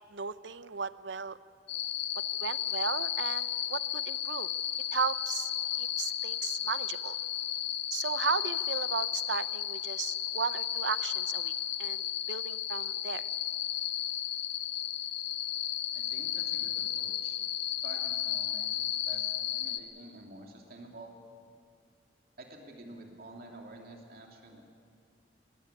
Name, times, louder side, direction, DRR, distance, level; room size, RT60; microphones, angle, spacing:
voice 1, 0.1-1.4 2.2-4.5 4.9-5.5 5.8-7.2 7.9-11.5 11.8-13.2, right 6 dB, 80° right, 15 dB, 0.6 m, -35 dB
sound 1, 1.7-19.8, left 11 dB, 70° left, 0.9 m, -33 dB
voice 2, 15.9-17.4 17.8-21.1 22.4-24.6, right 2 dB, 55° right, 1 dB, 2.9 m, -49 dB
19.0 x 16.5 x 9.9 m, 2.4 s
head